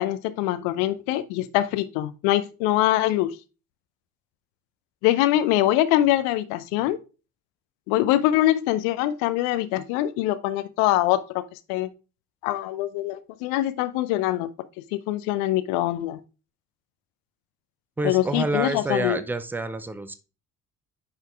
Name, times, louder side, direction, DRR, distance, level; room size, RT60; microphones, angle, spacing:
voice 1, 0.0-3.4 5.0-7.0 7.9-11.4 11.7-11.9 12.4-14.5 14.9-16.2 18.0-19.2, left 14 dB, 60° left, 0.6 m, -23 dB
voice 2, 18.0-20.1, right 2 dB, 5° right, 0.4 m, -28 dB
8.7 x 5.8 x 2.3 m
figure-of-eight pair, 45°, 46 cm